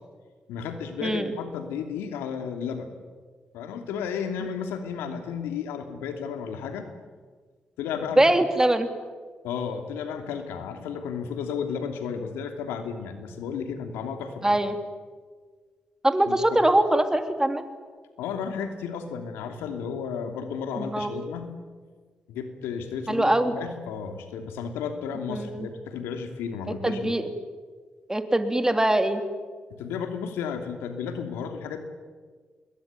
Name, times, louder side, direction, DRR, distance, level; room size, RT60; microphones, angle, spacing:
voice 1, 0.5-2.9 3.5-6.9 7.8-8.2 9.4-14.6 16.3-16.6 18.2-21.5 22.3-27.1 29.7-31.8, left 6 dB, 85° left, 6 dB, 2.8 m, -33 dB
voice 2, 1.0-1.3 8.2-8.9 14.4-14.8 16.0-17.7 20.8-21.1 23.1-23.5 25.3-25.7 26.8-27.3 28.1-29.2, right 1 dB, 15° right, 7 dB, 3.5 m, -22 dB
26.5 x 21.5 x 9.5 m, 1.5 s
hypercardioid pair, 45°, 4 cm